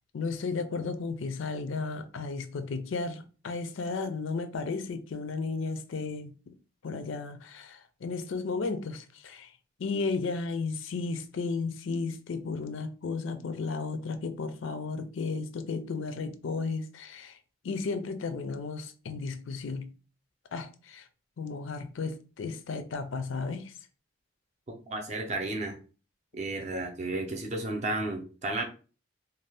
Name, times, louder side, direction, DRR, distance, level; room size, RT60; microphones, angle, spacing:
voice 1, 0.1-6.5 6.8-9.5 9.8-17.4 17.6-19.9 20.5-21.1 21.4-23.7, left 4 dB, 75° left, 0.4 m, -34 dB
voice 2, 24.9-25.8 26.3-28.6, right 2 dB, 35° right, 0.6 m, -32 dB
2.6 x 2.3 x 3.3 m
head